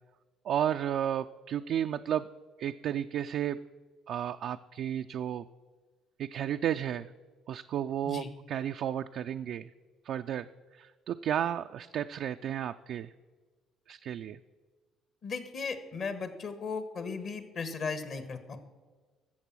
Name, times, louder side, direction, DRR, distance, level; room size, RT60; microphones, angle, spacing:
voice 1, 0.4-2.3 2.6-3.6 4.1-5.5 6.2-7.1 7.5-9.7 10.0-10.5 10.7-13.1 13.9-14.4, right 10 dB, 60° right, 7 dB, 0.3 m, -33 dB
voice 2, 15.2-18.6, left 4 dB, 50° left, 11 dB, 1.4 m, -36 dB
14.5 x 7.2 x 6.1 m, 1.4 s
hypercardioid pair, 55°, 0 cm